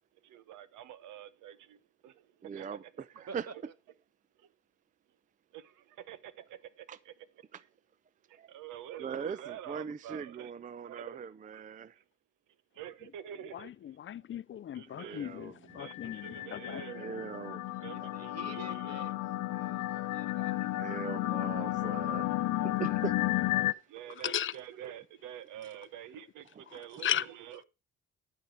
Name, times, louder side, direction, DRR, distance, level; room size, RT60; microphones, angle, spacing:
voice 1, 0.2-2.9 3.5-3.6 4.4-4.5 5.5-7.3 7.6-7.7 8.3-11.2 11.5-11.6 11.9-12.0 12.7-14.0 14.7-15.2 15.8-17.1 17.8-19.1 23.9-27.6, right 11 dB, 90° right, 1.0 m, -47 dB
voice 2, 2.4-2.8 3.2-3.5 6.9-7.0 8.4-8.5 9.0-12.0 14.9-15.9 16.9-17.6 19.5-19.7 20.8-22.3 22.6-23.2, right 6 dB, 25° right, 0.4 m, -40 dB
voice 3, 14.0-16.6 24.2-24.5 27.0-27.2, left 10 dB, 40° left, 0.4 m, -35 dB
sound 1, 15.8-23.7, left 16 dB, 85° left, 0.7 m, -33 dB
voice 4, 17.9-19.1 19.4-21.1 21.7-22.1, right 5 dB, 55° right, 1.7 m, -50 dB
12.5 x 4.6 x 6.4 m
cardioid pair, 90°, 30 cm